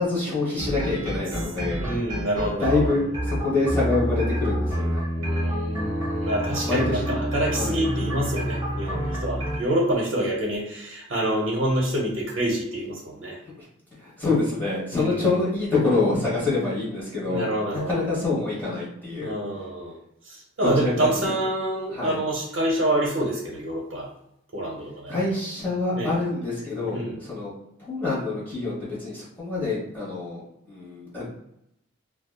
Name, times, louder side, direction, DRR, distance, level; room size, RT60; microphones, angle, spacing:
voice 1, 0.0-2.1 2.6-5.0 6.6-7.2 7.5-7.8 13.6-13.7 14.0-17.4 17.7-19.7 20.6-21.3 21.9-22.2 25.1-27.5 27.8-31.3, left 3 dB, 10° left, -9 dB, 1.0 m, -26 dB
sound 1, 0.6-9.6, equal, 15° right, 0.7 m, -28 dB
voice 2, 1.8-2.9 5.2-13.4 14.9-15.3 17.3-18.0 19.2-20.0 20.2-24.1 24.5-25.2 25.9-26.1 26.9-27.2, right 1 dB, 70° right, -2 dB, 0.6 m, -27 dB
2.6 x 2.3 x 2.2 m, 0.79 s
head